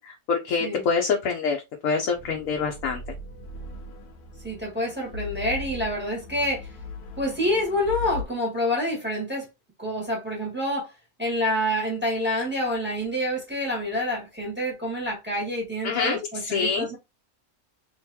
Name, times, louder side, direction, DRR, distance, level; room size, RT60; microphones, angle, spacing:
voice 1, 0.0-1.6 1.8-3.0 15.8-16.9, left 5 dB, 70° left, 1.1 m, -26 dB
sound 1, 2.1-8.2, left 3 dB, 85° left, 1.3 m, -38 dB
voice 2, 4.4-6.7 7.2-9.5 9.8-10.9 11.2-17.0, left 1 dB, 5° right, 1.6 m, -27 dB
3.7 x 3.0 x 2.8 m
omnidirectional pair, 1.5 m